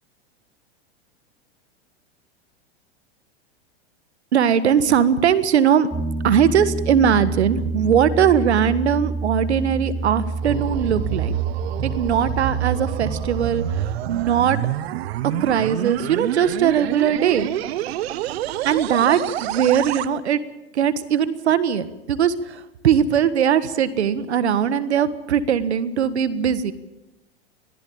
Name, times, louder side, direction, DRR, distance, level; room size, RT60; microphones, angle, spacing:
voice 1, 4.3-5.9 6.2-11.3 11.8-14.6 15.4-17.5 18.6-20.4 20.7-26.7, right 8 dB, 85° right, 14 dB, 1.6 m, -20 dB
Piano, 5.9-14.0, right 3 dB, 5° right, 2.9 m, -28 dB
sound 1, 10.0-20.1, right 13 dB, 70° right, 1.2 m, -28 dB
22.0 x 14.5 x 8.7 m, 0.98 s
hypercardioid pair, 115°, 32 cm